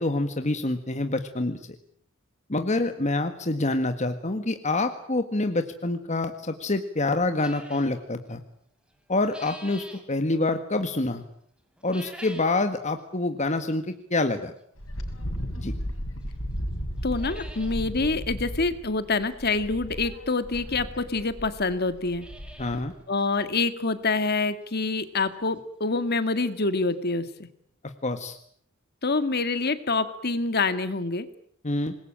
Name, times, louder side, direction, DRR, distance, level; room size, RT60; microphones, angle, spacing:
voice 1, 0.0-1.6 2.5-8.4 9.1-11.2 11.8-14.5 15.5-15.7 22.6-22.9 28.0-28.4 31.6-31.9, left 2 dB, 35° left, 7 dB, 1.7 m, -26 dB
sound 1, 7.4-7.9 8.9-10.0 11.8-12.6 13.0-13.1 13.9-14.0 15.7-15.8 16.2-16.3 16.6-16.7 17.0-17.8 18.1-18.2 18.4-18.5 20.1-20.2 20.9-21.0 21.2-21.3 21.8-22.9 23.2-23.3 23.8-23.9 24.3-24.4 26.1-26.2 26.4-26.5 26.9-27.0, equal, 5° right, 4.2 m, -46 dB
Wind, 14.8-22.9, equal, 70° left, 6.1 m, -35 dB
voice 2, 17.0-22.3 23.1-27.5 29.0-31.3, left 3 dB, 50° left, 11 dB, 2.0 m, -26 dB
26.5 x 21.5 x 8.9 m, 0.66 s
head